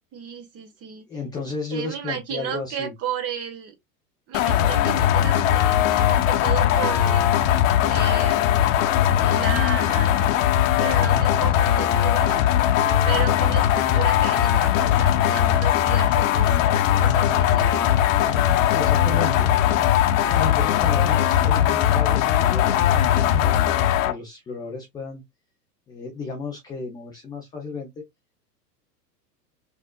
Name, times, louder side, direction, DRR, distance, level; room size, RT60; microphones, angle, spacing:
voice 1, 0.1-1.1 1.7-3.7 4.3-7.3 7.8-8.5 9.2-10.5 10.7-12.4 13.0-17.9, right 8 dB, 30° right, 1.2 m, -33 dB
voice 2, 1.1-2.9 18.6-19.5 20.1-23.6 24.0-25.2 25.9-28.0, left 4 dB, 10° left, 0.4 m, -33 dB
sound 1, 4.3-24.1, left 11 dB, 55° left, 0.9 m, -19 dB
4.4 x 2.5 x 2.2 m
hypercardioid pair, 105°, 48 cm